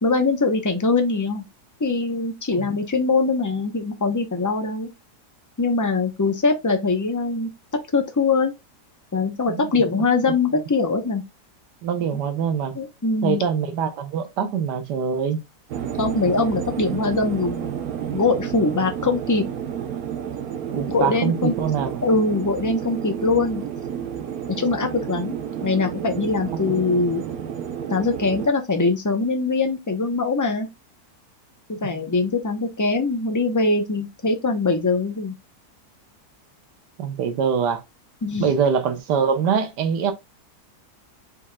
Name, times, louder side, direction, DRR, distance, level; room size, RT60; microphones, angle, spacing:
voice 1, 0.0-1.4 1.8-4.9 5.6-7.5 7.9-8.5 9.1-11.2 12.7-13.4 16.0-17.7 18.1-19.5 20.9-21.5 22.0-23.6 24.5-25.3 25.6-27.2 27.9-30.7 31.7-35.3 38.2-38.5, left 3 dB, 20° left, 0.4 m, -22 dB
voice 2, 11.8-12.7 13.2-15.4 20.7-22.0 26.7-26.8 37.0-37.8 38.4-40.1, right 6 dB, 90° right, 1.5 m, -23 dB
sound 1, 15.7-28.5, right 8 dB, 70° right, 1.3 m, -30 dB
4.8 x 4.1 x 2.3 m
omnidirectional pair, 1.8 m